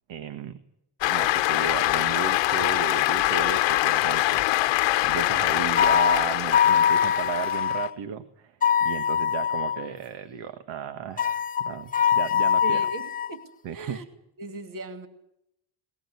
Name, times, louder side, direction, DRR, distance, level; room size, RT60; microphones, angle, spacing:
voice 1, 0.1-0.6 1.0-4.5 4.7-12.8 13.6-14.0, right 8 dB, 70° right, 9 dB, 1.8 m, -35 dB
Cheering / Applause, 1.0-7.9, left 17 dB, 70° left, 1.1 m, -24 dB
sound 1, 5.8-7.9 8.6-9.9 11.2-13.4, left 8 dB, 20° left, 1.2 m, -23 dB
voice 2, 12.6-14.0 14.4-15.1, right 3 dB, 45° right, 6 dB, 2.6 m, -38 dB
20.5 x 20.0 x 9.7 m, 0.79 s
cardioid pair, 105°, 46 cm